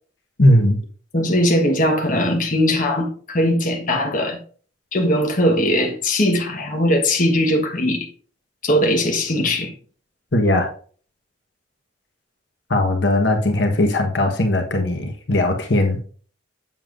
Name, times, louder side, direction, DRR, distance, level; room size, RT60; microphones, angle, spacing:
voice 1, 0.4-0.8 10.3-10.7 12.7-16.0, left 1 dB, 65° left, 1.2 m, -18 dB
voice 2, 1.1-4.4 4.9-8.1 8.6-9.7, left 1 dB, 45° left, 1.3 m, -20 dB
7.6 x 7.2 x 2.5 m
head